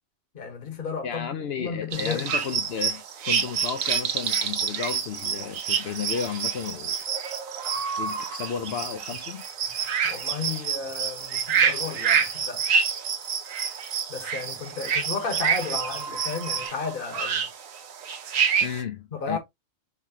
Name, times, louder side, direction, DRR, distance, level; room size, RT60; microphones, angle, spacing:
voice 1, 0.3-2.3 10.0-12.7 14.1-17.5 19.1-19.4, left 5 dB, 45° left, 1.3 m, -33 dB
voice 2, 1.0-7.0 8.0-9.4 18.6-19.4, left 7 dB, 65° left, 0.7 m, -33 dB
sound 1, 1.9-18.8, right 6 dB, 85° right, 1.2 m, -29 dB
sound 2, 2.4-16.7, right 7 dB, 60° right, 1.0 m, -31 dB
4.1 x 3.0 x 2.7 m
omnidirectional pair, 1.3 m